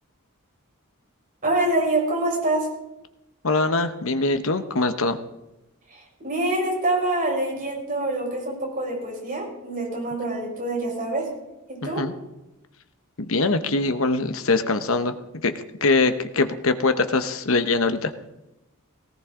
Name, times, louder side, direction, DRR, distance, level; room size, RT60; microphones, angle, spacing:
voice 1, 1.4-2.7 5.9-11.3 11.7-12.0, right 2 dB, 40° right, -2 dB, 5.8 m, -25 dB
voice 2, 3.4-5.2 11.8-12.1 13.3-15.1 15.4-15.5 15.8-18.1, left 3 dB, 65° left, 9 dB, 1.0 m, -22 dB
18.0 x 17.0 x 3.8 m, 0.96 s
head